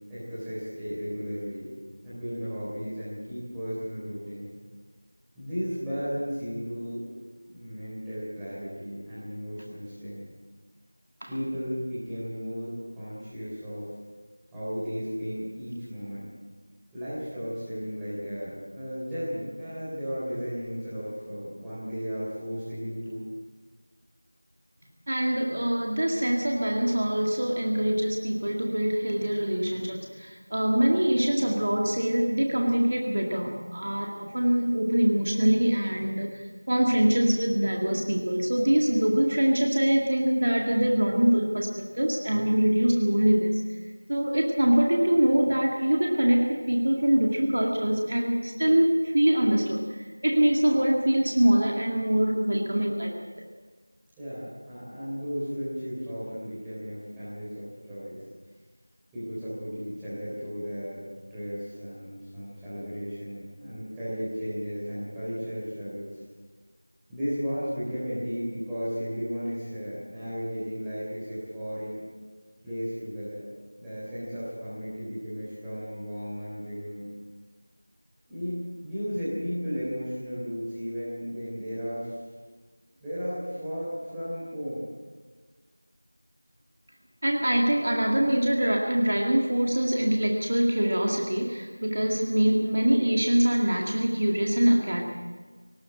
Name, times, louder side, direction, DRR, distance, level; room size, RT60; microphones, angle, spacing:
voice 1, 0.1-1.7 2.0-4.5 5.3-7.1 7.5-10.2 11.3-14.0 14.5-16.3 16.9-23.2 54.2-58.2 59.1-61.0 61.3-66.1 67.1-72.0 72.6-73.5 73.8-77.1 78.3-82.1 83.0-84.8, equal, 5° right, -13 dB, 3.9 m, -34 dB
voice 2, 25.1-43.6 44.1-53.2 87.2-95.0, right 1 dB, 40° right, 0 dB, 2.1 m, -24 dB
18.5 x 18.0 x 7.7 m, 1.5 s
figure-of-eight pair, 175°, 0 cm